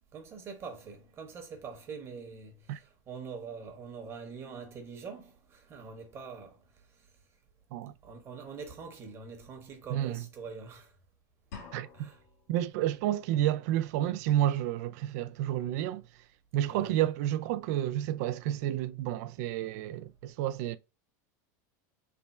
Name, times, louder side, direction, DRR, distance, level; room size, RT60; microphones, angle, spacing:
voice 1, 0.1-6.6 8.0-10.9 11.9-12.2 16.7-17.0, right 5 dB, 25° right, 1.0 m, -44 dB
sound 1, 11.5-12.5, left 5 dB, 75° left, 1.6 m, -47 dB
voice 2, 11.7-12.1 12.5-16.0 16.5-20.8, right 12 dB, 65° right, 0.4 m, -30 dB
3.4 x 2.1 x 4.2 m
supercardioid pair, 150°, 10 cm